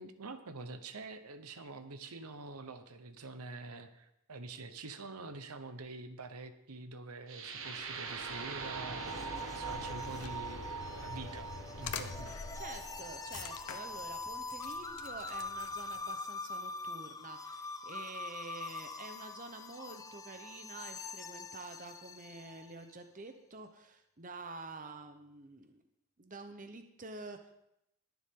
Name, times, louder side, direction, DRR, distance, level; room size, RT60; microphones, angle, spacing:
voice 1, 0.0-11.5 11.8-12.4, right 3 dB, 90° right, 9 dB, 1.0 m, -46 dB
sound 1, 7.3-15.3, right 4 dB, 65° right, 1.3 m, -43 dB
sound 2, 8.2-22.8, left 3 dB, 15° left, 0.4 m, -44 dB
sound 3, 9.7-16.0, left 5 dB, 90° left, 0.9 m, -46 dB
voice 2, 12.5-25.8 26.2-27.4, right 3 dB, 35° right, 7 dB, 0.8 m, -48 dB
20.5 x 7.2 x 3.8 m, 0.81 s
head